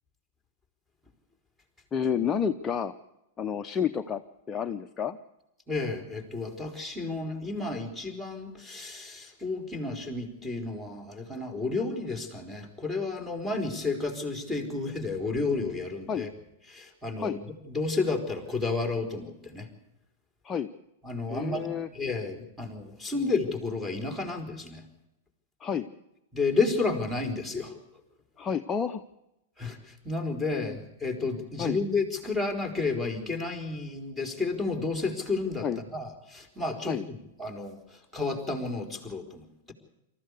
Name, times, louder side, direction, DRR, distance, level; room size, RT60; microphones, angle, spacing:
voice 1, 1.9-2.9 3.4-4.2 4.5-5.2 16.1-16.3 17.2-17.4 20.4-20.7 21.3-21.9 23.2-23.3 25.6-25.9 28.4-29.0 30.5-30.8 31.6-31.8 35.6-35.8 36.9-37.0, left 7 dB, 20° left, 7 dB, 0.8 m, -30 dB
voice 2, 5.7-16.3 16.7-17.4 17.7-19.7 21.0-21.7 21.9-24.8 26.3-27.8 29.6-39.7, left 3 dB, 5° right, 3 dB, 4.1 m, -31 dB
26.0 x 14.5 x 8.2 m, 0.91 s
figure-of-eight pair, 100°, 0 cm